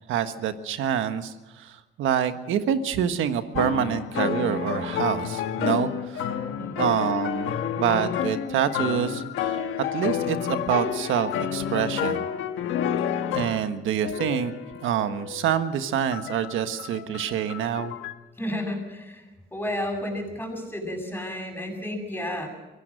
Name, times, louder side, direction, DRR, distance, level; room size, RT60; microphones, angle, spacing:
voice 1, 0.1-6.3 6.8-9.6 9.9-12.3 13.3-14.5 14.8-17.9, right 9 dB, 85° right, 9 dB, 1.4 m, -26 dB
sound 1, 3.6-13.7 14.0-15.5 16.1-18.1, left 9 dB, 85° left, 1.5 m, -29 dB
voice 2, 6.5-6.9 18.4-19.2 19.5-22.5, left 1 dB, 10° left, 2 dB, 7.7 m, -32 dB
24.5 x 17.0 x 6.5 m, 1.1 s
cardioid pair, 90°, 20 cm